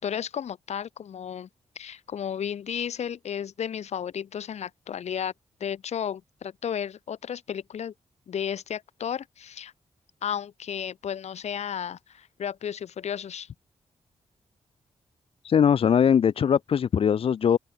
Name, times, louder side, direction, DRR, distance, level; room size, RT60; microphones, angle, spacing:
voice 1, 0.0-1.5 1.7-5.3 5.6-7.9 8.3-9.7 10.2-13.5, left 8 dB, 75° left, 4.3 m, -33 dB
voice 2, 15.4-17.6, left 8 dB, 55° left, 0.8 m, -21 dB
open air
wide cardioid pair, 175°, 11 cm